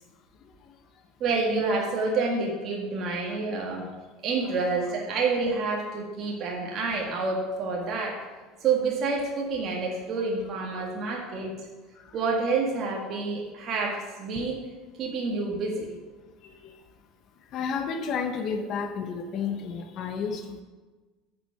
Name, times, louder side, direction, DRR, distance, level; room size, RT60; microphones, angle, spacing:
voice 1, 1.2-3.9 4.2-8.2 8.6-11.5 12.1-14.6 15.0-15.9, right 4 dB, 45° right, -1 dB, 1.8 m, -28 dB
voice 2, 16.4-16.8 17.5-20.6, left 6 dB, 45° left, 7 dB, 1.0 m, -32 dB
8.9 x 6.0 x 7.9 m, 1.3 s
supercardioid pair, 125°, 0 cm